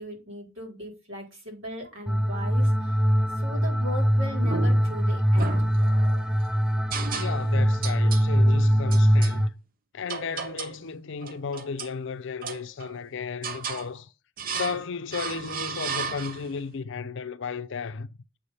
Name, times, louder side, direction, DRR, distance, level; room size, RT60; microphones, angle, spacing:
voice 1, 0.0-3.0 3.4-5.5 6.9-7.1, left 1 dB, 70° right, 3.5 m, -38 dB
sound 1, 2.1-9.5, equal, 5° right, 0.5 m, -22 dB
sound 2, 4.4-5.0 5.4-6.3 6.9-7.6 7.8-8.3 8.9-9.4 10.1-10.8 11.2-12.0 12.4-13.0 13.4-13.9 14.4-14.8 15.1-16.6, right 5 dB, 45° right, 0.8 m, -34 dB
voice 2, 7.1-9.5 9.9-14.1 14.5-18.1, left 5 dB, 65° left, 0.5 m, -34 dB
7.6 x 3.3 x 5.6 m
head